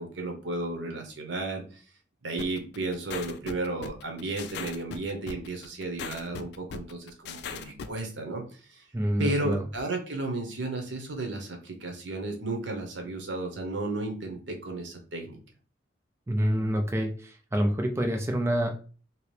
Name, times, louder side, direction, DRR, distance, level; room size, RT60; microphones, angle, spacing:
voice 1, 0.0-1.8 2.2-8.8 9.2-15.4, right 2 dB, 75° right, 3 dB, 0.9 m, -33 dB
sound 1, 2.4-8.0, left 6 dB, 65° left, 0.3 m, -39 dB
voice 2, 8.9-9.6 16.3-18.7, equal, 15° right, 3 dB, 0.4 m, -27 dB
2.9 x 2.9 x 3.2 m, 0.39 s
head